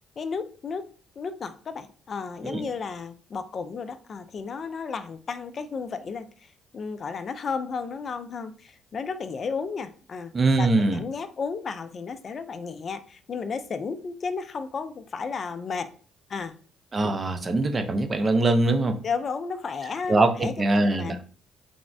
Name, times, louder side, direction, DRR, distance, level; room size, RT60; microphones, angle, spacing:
voice 1, 0.2-0.8 1.2-10.3 10.6-15.9 16.3-16.5 19.0-21.2, left 5 dB, 50° left, 10 dB, 0.3 m, -33 dB
voice 2, 10.3-11.0 16.9-19.0 20.1-21.2, right 2 dB, 35° right, 7 dB, 0.4 m, -22 dB
3.3 x 2.0 x 2.5 m, 0.40 s
supercardioid pair, 65°, 0 cm